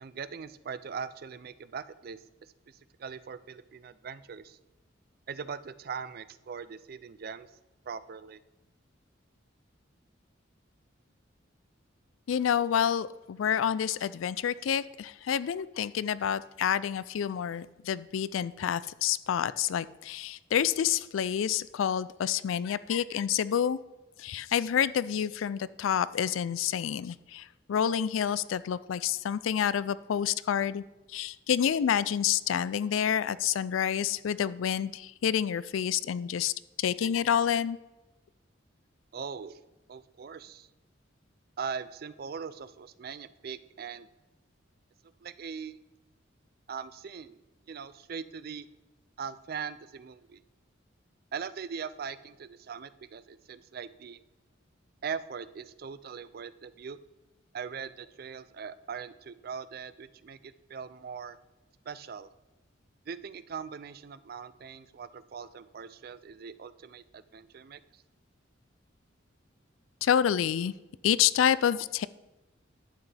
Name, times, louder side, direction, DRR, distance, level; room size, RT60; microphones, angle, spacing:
voice 1, 0.0-2.2 2.7-4.6 5.3-7.5 7.9-8.4 39.1-39.6 39.9-40.7 41.6-44.1 45.2-45.8 46.7-47.4 47.7-48.7 49.2-50.4 51.3-54.2 55.0-57.0 57.5-61.4 61.9-62.3 63.1-68.0, right 6 dB, 50° right, 15 dB, 0.4 m, -41 dB
voice 2, 12.3-23.8 24.2-30.8 31.1-36.5 36.8-37.8 70.0-70.7 71.0-72.1, left 9 dB, 90° left, 18 dB, 0.4 m, -28 dB
11.0 x 8.2 x 3.3 m, 1.1 s
head